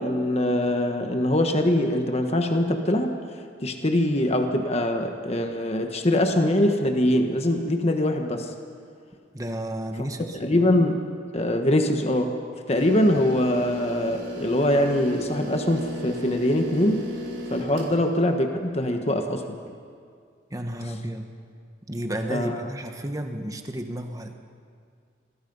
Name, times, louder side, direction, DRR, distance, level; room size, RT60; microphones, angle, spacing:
voice 1, 0.0-3.2 3.6-8.5 10.3-11.0 11.3-12.4 12.7-17.1 17.5-19.6 22.3-22.6, left 1 dB, 35° left, 4 dB, 1.4 m, -23 dB
voice 2, 9.3-10.4 17.8-18.0 20.5-21.3 21.9-24.4, right 1 dB, 20° right, 5 dB, 1.4 m, -32 dB
sound 1, 12.7-17.9, equal, 80° right, 4.9 m, -35 dB
28.0 x 21.5 x 5.5 m, 2.2 s
head